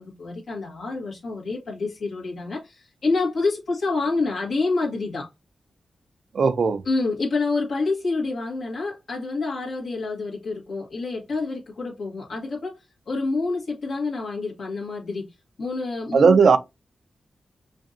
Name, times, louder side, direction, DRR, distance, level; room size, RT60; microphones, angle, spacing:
voice 1, 0.0-5.3 6.8-12.8 13.0-16.6, left 3 dB, 75° left, 1.6 m, -28 dB
voice 2, 6.3-6.8 16.1-16.6, right 5 dB, 70° right, 0.5 m, -16 dB
5.0 x 2.6 x 2.6 m
cardioid pair, 60°, 0 cm